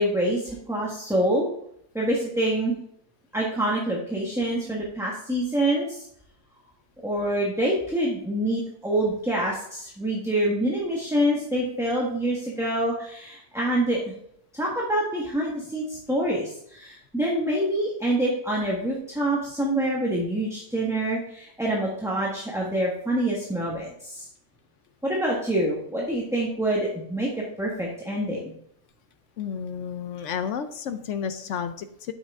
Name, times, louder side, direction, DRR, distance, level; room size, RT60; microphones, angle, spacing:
voice 1, 0.0-1.5 1.9-2.8 3.3-6.0 7.0-14.1 14.5-24.3 25.0-28.5, right 1 dB, ahead, -4 dB, 1.2 m, -26 dB
voice 2, 29.4-32.1, left 7 dB, 70° left, 10 dB, 0.7 m, -31 dB
8.6 x 6.3 x 3.6 m, 0.69 s
omnidirectional pair, 1.8 m